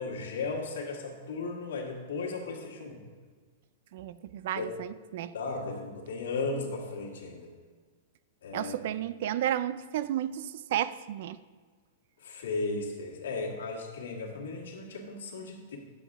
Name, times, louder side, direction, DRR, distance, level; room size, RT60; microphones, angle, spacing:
voice 1, 0.0-3.0 4.6-4.7 5.3-7.5 8.4-8.8 12.2-15.8, left 3 dB, 85° left, 1.9 m, -35 dB
voice 2, 3.9-5.3 8.5-11.4, right 11 dB, 50° right, 0.3 m, -32 dB
9.9 x 7.0 x 3.6 m
supercardioid pair, 175°, 0 cm